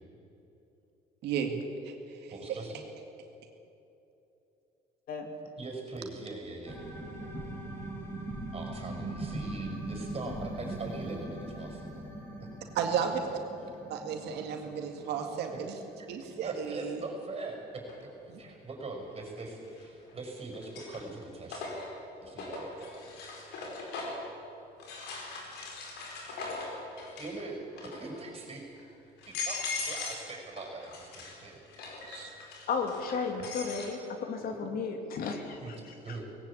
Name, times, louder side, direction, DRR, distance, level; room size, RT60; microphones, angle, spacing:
voice 1, 1.2-2.6 12.7-13.4 13.9-15.8 16.1-17.0 18.3-18.4 32.0-32.3, right 7 dB, 80° right, 4 dB, 2.2 m, -34 dB
voice 2, 2.3-2.8 5.6-6.8 8.5-12.1 12.4-12.5 15.5-15.6 16.0-16.1 16.4-18.1 18.4-21.7 22.2-23.0 27.2-28.8 29.3-31.6 34.4-34.5 35.6-36.3, right 3 dB, 35° right, 2 dB, 5.7 m, -42 dB
sound 1, 6.7-18.0 18.3-18.4, right 1 dB, 15° left, 6.1 m, -41 dB
sound 2, 17.9-18.0 19.7-20.1 20.5-24.3 24.8-27.4 27.7-28.2 28.8-28.9 29.2-30.3 30.6-33.9, left 3 dB, 80° left, 4.9 m, -40 dB
voice 3, 32.7-35.8, left 5 dB, 60° left, 4 dB, 2.8 m, -34 dB
19.0 x 17.0 x 8.6 m, 2.9 s
cardioid pair, 110°, 17 cm